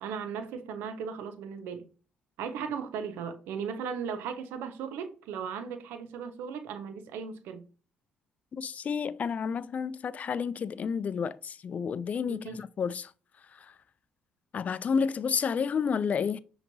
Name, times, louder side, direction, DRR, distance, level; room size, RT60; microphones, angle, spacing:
voice 1, 0.0-1.9 2.4-7.7 12.2-12.6, right 6 dB, 80° right, 0.5 m, -37 dB
voice 2, 8.5-13.1 13.5-13.7 14.5-16.4, left 6 dB, 45° left, 0.3 m, -30 dB
5.8 x 2.9 x 2.7 m
supercardioid pair, 60°, 3 cm